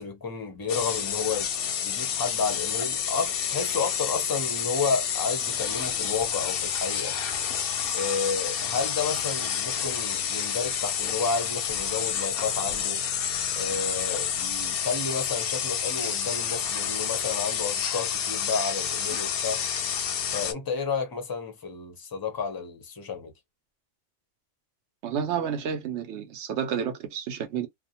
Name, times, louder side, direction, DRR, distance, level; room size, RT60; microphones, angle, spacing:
voice 1, 0.0-1.5 1.8-7.2 7.9-13.0 13.5-19.6 20.3-23.3, left 5 dB, 25° left, 0.5 m, -31 dB
sound 1, 0.7-20.5, left 8 dB, 65° left, 0.7 m, -29 dB
voice 2, 25.0-27.7, right 8 dB, 75° right, 0.9 m, -30 dB
2.4 x 2.2 x 2.7 m
omnidirectional pair, 1.2 m